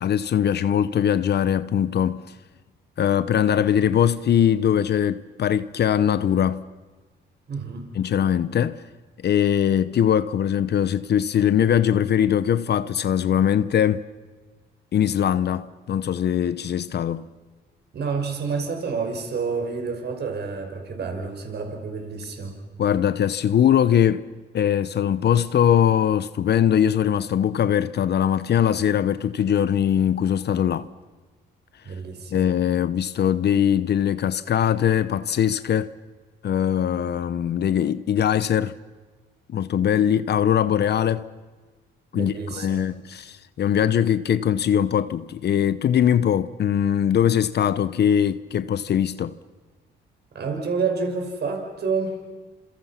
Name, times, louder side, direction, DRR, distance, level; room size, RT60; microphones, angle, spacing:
voice 1, 0.0-2.3 3.0-6.7 7.9-8.8 9.2-14.1 14.9-17.2 22.8-24.3 24.5-30.9 32.3-35.9 36.4-38.7 39.5-41.3 42.1-49.3, left 9 dB, 55° left, 0.9 m, -21 dB
voice 2, 7.5-7.9 17.9-22.6 31.9-32.4 42.1-42.9 50.3-52.2, right 5 dB, 55° right, 5.9 m, -29 dB
29.5 x 27.0 x 5.9 m
cardioid pair, 90°, 20 cm